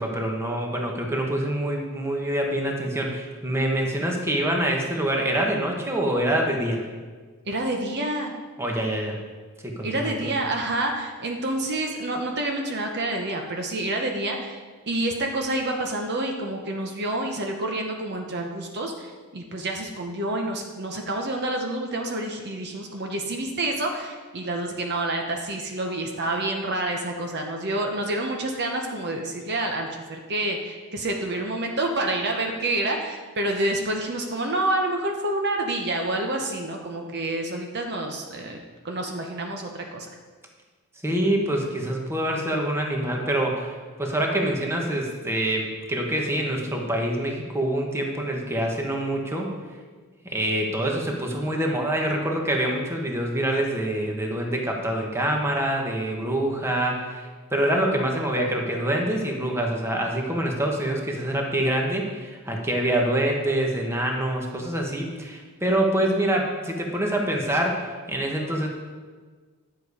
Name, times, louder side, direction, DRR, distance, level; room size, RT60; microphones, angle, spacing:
voice 1, 0.0-6.9 8.6-9.2 9.6-10.1 41.0-49.5 50.2-57.3 57.5-68.7, right 1 dB, 10° right, 1 dB, 1.1 m, -25 dB
voice 2, 7.5-8.3 9.8-14.6 14.9-40.1, right 1 dB, 50° right, 2 dB, 0.9 m, -28 dB
10.5 x 6.8 x 4.8 m, 1.4 s
head